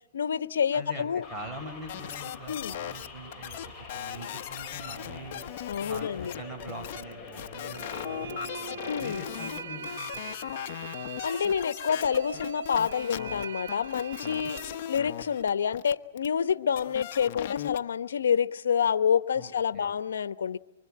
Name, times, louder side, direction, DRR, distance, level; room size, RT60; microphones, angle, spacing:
voice 1, 0.1-1.3 2.5-2.8 5.7-6.3 8.8-9.2 11.2-14.6 14.9-20.6, left 7 dB, 85° left, 14 dB, 1.0 m, -28 dB
voice 2, 0.7-3.6 3.9-5.5 5.9-10.6 19.3-19.9, right 1 dB, 15° right, 4 dB, 4.7 m, -43 dB
sound 1, 1.2-9.8, left 3 dB, 5° left, 7.0 m, -46 dB
sound 2, 1.9-3.1 3.3-17.8, left 12 dB, 50° left, 1.1 m, -38 dB
sound 3, 7.7-15.4, right 6 dB, 70° right, 1.8 m, -42 dB
24.5 x 24.5 x 8.7 m, 0.93 s
hypercardioid pair, 145°, 0 cm